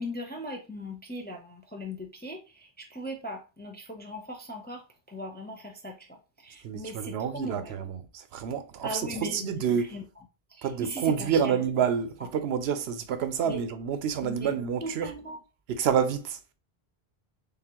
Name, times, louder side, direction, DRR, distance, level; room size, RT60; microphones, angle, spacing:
voice 1, 0.0-7.7 8.8-9.5 9.8-10.0 10.5-11.6 13.4-13.6 14.2-14.5 14.8-15.4, equal, 15° left, 0.4 m, -39 dB
voice 2, 6.6-10.0 10.6-15.1 15.7-16.4, right 7 dB, 80° right, 0.8 m, -28 dB
3.9 x 3.4 x 2.9 m
omnidirectional pair, 1.0 m